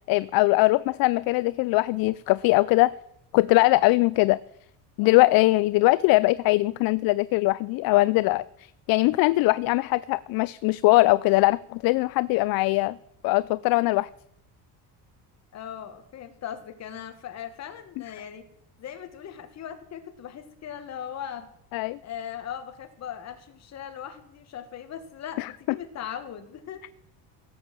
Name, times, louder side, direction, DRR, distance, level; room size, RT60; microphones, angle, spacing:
voice 1, 0.1-2.9 3.3-4.4 5.0-13.0 13.2-14.1 21.7-22.0 25.4-25.5, left 20 dB, 65° left, 0.5 m, -21 dB
voice 2, 15.5-18.5 18.8-21.5 22.0-26.8, left 9 dB, 40° left, 1.8 m, -39 dB
16.5 x 7.4 x 7.6 m
cardioid pair, 145°, 39 cm